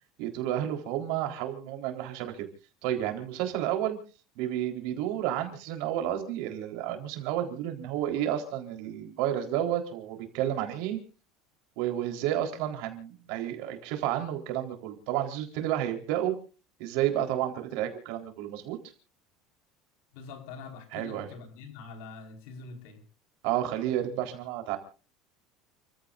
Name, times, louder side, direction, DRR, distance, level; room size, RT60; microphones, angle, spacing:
voice 1, 0.2-2.5 2.8-4.0 4.4-11.0 11.8-16.3 16.8-18.8 20.9-21.3 23.4-24.8, right 11 dB, 65° right, 4 dB, 4.0 m, -31 dB
voice 2, 20.1-23.0, left 4 dB, 75° left, 5 dB, 4.8 m, -44 dB
30.0 x 15.5 x 2.6 m, 0.36 s
cardioid pair, 165°, 0 cm